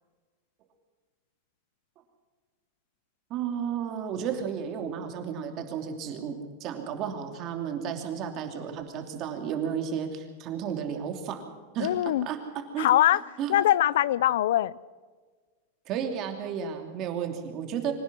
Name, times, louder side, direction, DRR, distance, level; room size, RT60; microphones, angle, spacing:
voice 1, 3.3-6.3 6.6-11.4 11.7-11.9 12.2-12.4 12.7-12.9 13.4-13.5 15.9-17.9, right 8 dB, 30° right, 2.8 m, -32 dB
voice 2, 11.8-12.3 12.8-13.2 13.5-14.7, left 13 dB, 75° left, 0.5 m, -22 dB
24.5 x 17.0 x 6.2 m
supercardioid pair, 170°, 0 cm